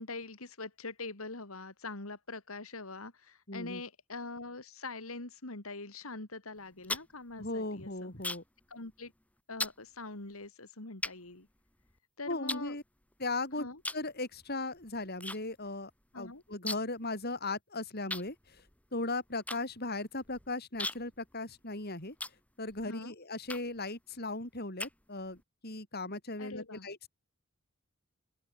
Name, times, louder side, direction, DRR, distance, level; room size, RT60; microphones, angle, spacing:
voice 1, 0.0-8.1 8.7-9.1 9.5-11.5 12.2-12.7 13.6-13.8 16.1-16.4 22.8-23.1 26.4-26.9, left 3 dB, 75° left, 2.8 m, -43 dB
voice 2, 3.5-3.8 7.4-8.4 12.3-12.8 13.2-13.7 13.9-18.6 18.9-22.2 22.6-27.1, left 2 dB, 45° left, 5.2 m, -37 dB
sound 1, 6.6-8.6 8.9-9.2 9.6-9.8 10.4-10.5 11.0-12.0 12.5-13.3 13.8-14.1 14.4-15.4 15.7-15.8 16.0-17.0 17.3-17.4 18.1-22.9 23.4-23.9 24.4-25.4, left 2 dB, 5° left, 2.8 m, -40 dB
open air
head